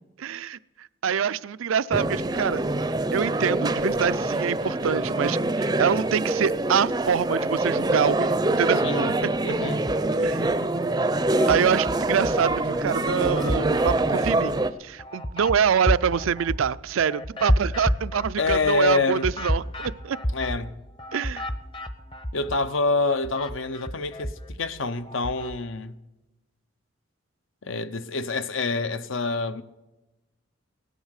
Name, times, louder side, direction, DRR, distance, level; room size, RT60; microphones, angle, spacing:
voice 1, 0.2-0.6 1.0-2.6 3.1-8.8 9.2-9.3 10.2-10.6 11.5-20.2 21.1-21.5, right 7 dB, 85° right, 0.4 m, -25 dB
sound 1, 1.9-14.7, right 2 dB, 20° right, 0.5 m, -25 dB
voice 2, 8.8-9.1 9.4-9.8 18.4-19.3 20.3-20.8 22.3-24.3 24.6-26.0 27.6-29.6, left 3 dB, 75° left, 0.8 m, -26 dB
sound 2, 9.7-10.6 11.0-12.6 13.0-22.7 23.0-25.6, equal, 25° left, 0.7 m, -31 dB
17.0 x 11.0 x 6.5 m
head